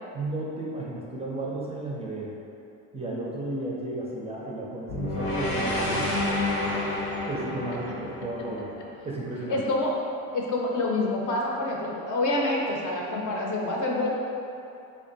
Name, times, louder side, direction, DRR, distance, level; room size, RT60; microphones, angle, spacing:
voice 1, 0.1-2.3 2.9-6.2 7.3-8.7 9.0-9.6, right 2 dB, 15° right, -5 dB, 0.4 m, -33 dB
sound 1, 4.9-9.1, left 1 dB, 85° left, 0.9 m, -29 dB
voice 2, 9.5-9.9 10.3-14.1, left 2 dB, 50° left, -2 dB, 0.7 m, -27 dB
3.5 x 2.1 x 3.9 m, 2.7 s
cardioid pair, 100°, 38 cm